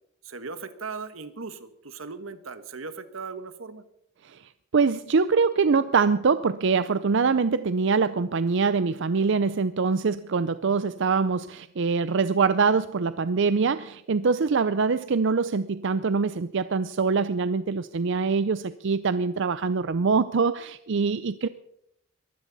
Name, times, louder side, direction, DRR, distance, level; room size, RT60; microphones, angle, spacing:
voice 1, 0.2-3.8, right 4 dB, 85° right, 11 dB, 1.4 m, -38 dB
voice 2, 4.7-21.5, right 5 dB, 65° right, 14 dB, 0.5 m, -24 dB
22.5 x 15.5 x 4.1 m, 0.77 s
head